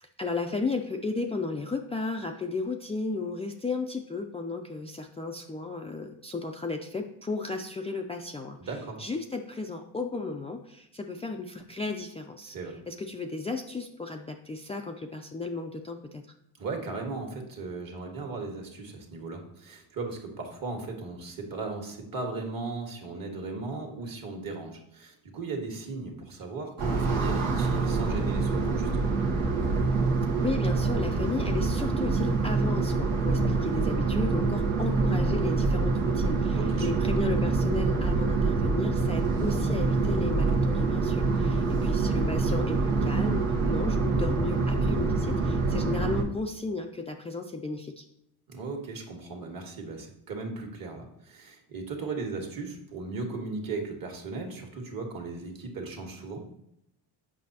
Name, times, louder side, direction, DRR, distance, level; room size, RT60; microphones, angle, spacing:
voice 1, 0.0-8.6 9.0-12.6 12.9-16.2 30.4-48.0, left 3 dB, 15° left, 2 dB, 0.4 m, -34 dB
voice 2, 8.6-9.0 12.4-12.8 16.6-29.1 36.5-37.0 41.3-41.7 48.5-56.4, right 3 dB, 45° right, 3 dB, 1.6 m, -37 dB
sound 1, 26.8-46.2, right 3 dB, 75° right, 1.3 m, -26 dB
7.5 x 5.6 x 2.8 m, 0.80 s
cardioid pair, 90°, 48 cm